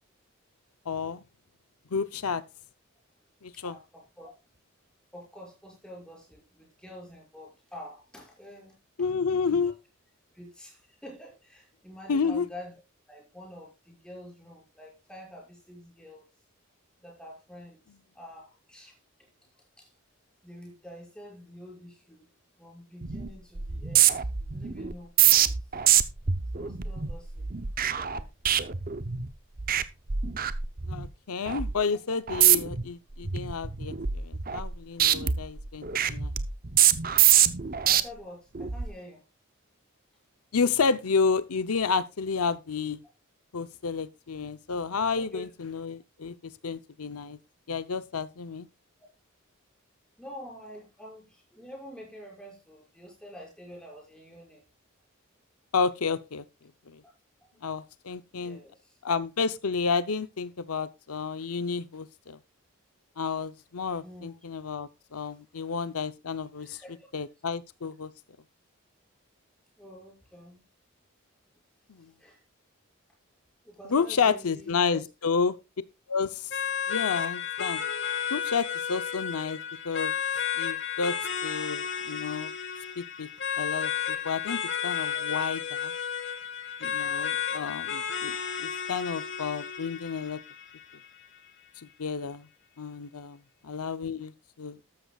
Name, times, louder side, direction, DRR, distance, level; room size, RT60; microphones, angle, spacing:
voice 1, 0.9-1.2 1.9-2.4 3.4-3.7 9.0-9.7 12.1-12.5 30.9-36.3 40.5-43.0 43.5-47.4 47.7-48.7 55.7-56.4 56.9-57.0 57.6-58.6 59.0-62.4 63.2-66.8 67.1-68.1 72.0-72.1 73.9-75.5 76.1-76.5 76.9-77.8 78.3-80.1 80.6-81.2 81.4-82.5 83.0-83.3 83.6-85.9 86.8-90.4 91.8-92.5 92.8-93.4 93.6-94.3 94.6-94.8, left 5 dB, 90° left, 0.7 m, -30 dB
voice 2, 3.5-4.3 5.1-9.1 9.5-9.7 10.3-12.7 13.1-16.3 17.0-17.8 18.1-19.3 19.8-19.9 20.4-22.3 22.6-25.5 26.5-28.3 37.8-39.2 45.1-45.5 50.2-54.6 58.3-59.0 64.0-64.4 65.3-65.4 66.6-67.2 69.8-70.6 72.0-72.4 73.6-75.0 85.1-85.2, equal, 5° left, 6.3 m, -47 dB
sound 1, 23.0-23.3 23.6-29.3 29.6-29.8 30.1-31.1 31.5-31.7 32.3-32.8 33.2-34.7 35.0-38.0 38.5-38.9, right 10 dB, 40° right, 0.7 m, -24 dB
sound 2, 76.5-91.5, left 8 dB, 55° left, 1.6 m, -32 dB
13.5 x 12.5 x 2.4 m
head